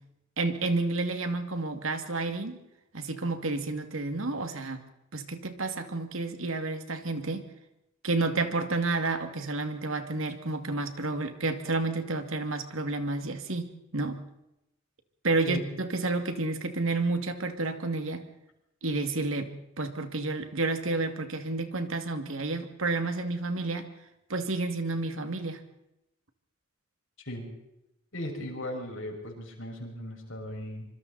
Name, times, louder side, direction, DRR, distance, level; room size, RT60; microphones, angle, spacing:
voice 1, 0.4-2.6 2.9-4.8 5.1-7.4 8.0-14.2 15.2-18.3 18.8-23.9 24.3-25.6, right 3 dB, 85° right, 7 dB, 2.4 m, -30 dB
voice 2, 28.1-30.9, left 1 dB, 75° left, 1 dB, 6.2 m, -37 dB
26.0 x 24.5 x 4.2 m, 0.87 s
head